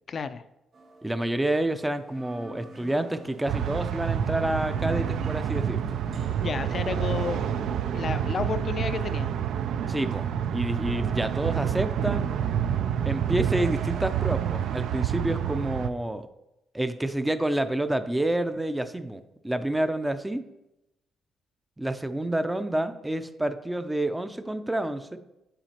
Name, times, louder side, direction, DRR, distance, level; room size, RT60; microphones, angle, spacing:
voice 1, 0.1-0.4 6.4-7.4 7.9-9.3, left 5 dB, 45° left, 12 dB, 0.4 m, -31 dB
sound 1, 0.7-9.1, right 2 dB, 55° right, 1.4 m, -47 dB
voice 2, 1.0-5.8 9.9-12.3 13.1-16.3 16.7-20.4 21.8-25.2, right 1 dB, 10° right, 10 dB, 0.4 m, -28 dB
sound 2, 3.5-15.9, right 9 dB, 75° right, 0.3 m, -28 dB
9.0 x 4.1 x 2.9 m, 0.90 s
cardioid pair, 90°, 0 cm